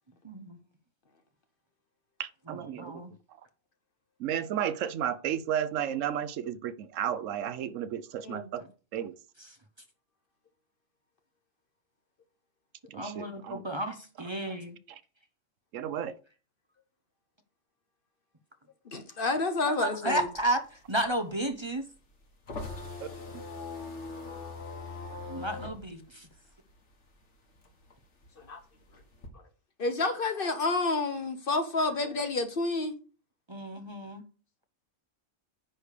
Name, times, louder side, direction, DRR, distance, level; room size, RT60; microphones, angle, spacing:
voice 1, 0.2-0.6 2.5-3.1 12.9-14.8 19.8-21.9 25.3-26.3 33.5-34.2, right 1 dB, 25° right, 0.7 m, -33 dB
voice 2, 2.2-2.9 4.2-8.6 8.9-9.1 12.9-13.6 15.7-16.1, right 9 dB, 75° right, 1.0 m, -33 dB
voice 3, 18.9-20.3 28.5-28.6 29.8-33.0, left 3 dB, 45° left, 1.1 m, -29 dB
sound 1, 20.1-27.2 27.5-29.3, left 3 dB, 65° left, 1.9 m, -41 dB
9.9 x 3.4 x 6.5 m
omnidirectional pair, 1.3 m